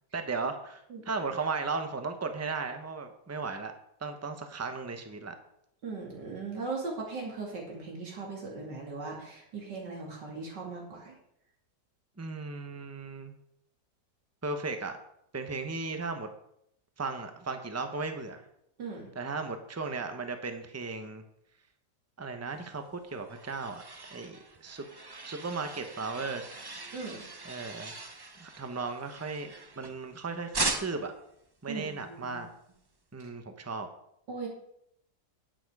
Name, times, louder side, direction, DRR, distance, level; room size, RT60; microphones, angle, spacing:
voice 1, 0.1-3.7 4.0-5.3 12.2-13.3 14.4-14.9 15.3-16.3 17.0-18.4 19.1-21.2 22.2-23.8 24.1-24.8 25.2-26.5 27.4-27.9 28.4-31.1 31.6-32.5 33.1-33.9, right 4 dB, 10° right, 7 dB, 0.7 m, -36 dB
voice 2, 5.8-11.1 18.8-19.1 26.9-27.2 31.7-32.4 34.3-34.5, right 3 dB, 80° right, -2 dB, 3.1 m, -38 dB
sound 1, 22.8-30.1 30.5-31.2, right 3 dB, 35° right, 0.3 m, -39 dB
10.0 x 9.0 x 4.8 m, 0.75 s
omnidirectional pair, 1.8 m